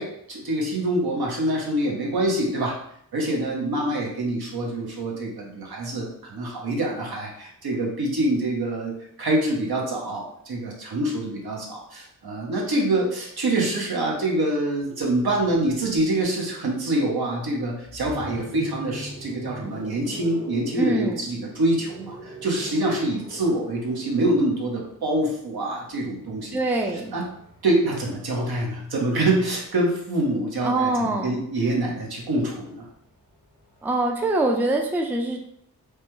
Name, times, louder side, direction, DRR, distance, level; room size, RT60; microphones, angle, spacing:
voice 1, 0.0-2.7 3.1-26.6 27.1-27.3 27.6-32.9, right 1 dB, 70° right, -2 dB, 1.0 m, -25 dB
sound 1, 17.8-29.8 31.0-34.6, right 1 dB, 45° right, 1.4 m, -44 dB
voice 2, 20.7-21.2 26.5-27.1 30.6-31.4 33.8-35.4, right 2 dB, 5° right, 2 dB, 0.4 m, -24 dB
3.2 x 2.2 x 3.0 m, 0.68 s
cardioid pair, 50°, 38 cm